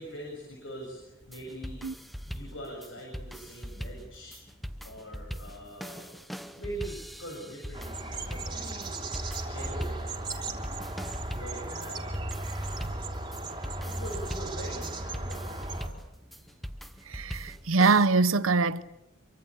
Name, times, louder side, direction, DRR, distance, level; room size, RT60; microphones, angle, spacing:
voice 1, 0.0-1.8 2.3-4.4 4.8-8.9 9.5-10.6 11.3-12.1 13.4-16.0 16.3-16.5, right 1 dB, 70° left, 7.3 m, -43 dB
sound 1, 1.2-18.1, equal, ahead, 0.9 m, -41 dB
sound 2, 7.7-15.9, right 2 dB, 20° right, 3.2 m, -36 dB
voice 2, 17.1-18.8, right 4 dB, 90° right, 0.9 m, -23 dB
26.5 x 24.0 x 8.5 m
head